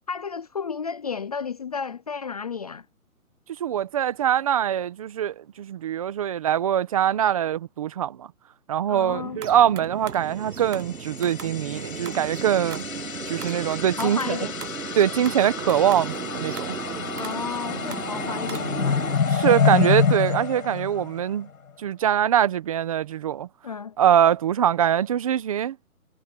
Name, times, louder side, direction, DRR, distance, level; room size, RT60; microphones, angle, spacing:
voice 1, 0.1-2.9 8.9-9.4 14.0-14.6 17.1-19.0 23.6-24.0, left 5 dB, 25° left, 0.7 m, -32 dB
voice 2, 3.6-8.3 8.7-12.8 13.3-14.4 15.0-16.8 19.3-21.5 21.8-23.5 24.0-25.8, right 10 dB, 25° right, 1.1 m, -23 dB
sound 1, 9.1-19.2, right 7 dB, 85° right, 1.6 m, -36 dB
sound 2, 10.8-21.5, left 6 dB, 70° left, 5.8 m, -28 dB
hypercardioid pair, 165°, 44 cm